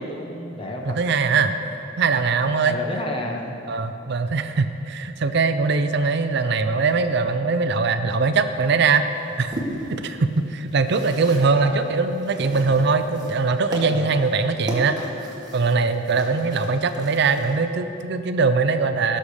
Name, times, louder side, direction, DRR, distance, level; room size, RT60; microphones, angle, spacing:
voice 1, 0.0-1.0 2.6-3.5 11.5-11.8 13.8-14.0, left 1 dB, 30° left, 1 dB, 1.1 m, -31 dB
voice 2, 0.8-1.5 2.0-2.7 3.7-9.5 9.9-15.0 15.5-19.2, right 4 dB, 60° right, 9 dB, 0.5 m, -21 dB
sound 1, 8.5-17.6, right 1 dB, 20° right, 1.6 m, -37 dB
17.0 x 6.6 x 4.9 m, 2.9 s
head